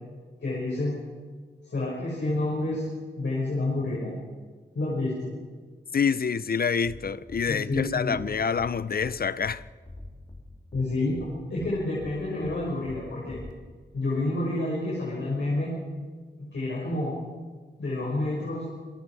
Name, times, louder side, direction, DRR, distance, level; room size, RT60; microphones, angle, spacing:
voice 1, 0.4-0.9 1.6-2.9 3.2-4.2 4.7-5.3 7.5-8.1 10.7-13.4 13.9-15.7 16.5-17.2 17.8-18.7, left 2 dB, 80° left, 5.8 m, -29 dB
voice 2, 5.9-9.6, left 6 dB, 55° left, 0.5 m, -27 dB
sound 1, 6.8-7.0 7.3-7.4 7.7-7.8 8.1-8.3 8.6-8.7 9.0-9.1 9.4-9.6 9.8-10.4 10.7-10.8 11.1-11.3 11.6-11.7 12.0-12.1 12.4-12.6 12.8-13.0 13.3-13.5, left 2 dB, 20° left, 3.0 m, -43 dB
27.0 x 22.0 x 4.8 m
wide cardioid pair, 125°, 18 cm